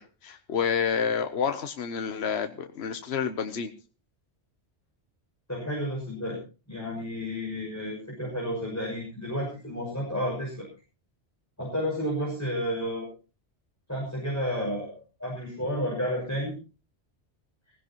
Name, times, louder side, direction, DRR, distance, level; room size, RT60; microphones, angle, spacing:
voice 1, 0.0-3.7, left 7 dB, 70° left, 8 dB, 1.2 m, -29 dB
voice 2, 5.5-6.4 6.7-10.7 11.6-13.1 13.9-16.5, equal, 15° left, -3 dB, 6.3 m, -31 dB
20.0 x 16.0 x 3.0 m, 0.34 s
omnidirectional pair, 1.1 m